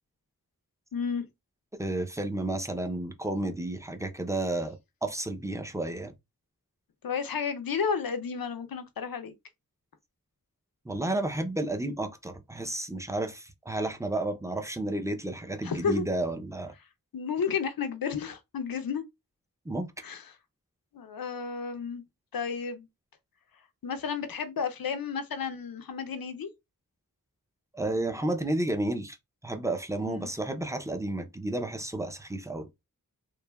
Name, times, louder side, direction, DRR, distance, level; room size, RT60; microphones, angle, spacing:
voice 1, 0.9-1.2 7.0-9.3 15.6-16.0 17.1-19.0 20.0-20.4 20.9-22.0 22.3-22.9 23.8-26.5 30.1-30.3, left 6 dB, 80° left, 0.5 m, -32 dB
voice 2, 1.8-4.8 5.0-6.1 10.9-16.7 19.7-19.9 27.7-29.2 29.4-32.7, right 2 dB, 10° right, 0.5 m, -31 dB
3.2 x 2.1 x 2.2 m
wide cardioid pair, 45°, 35 cm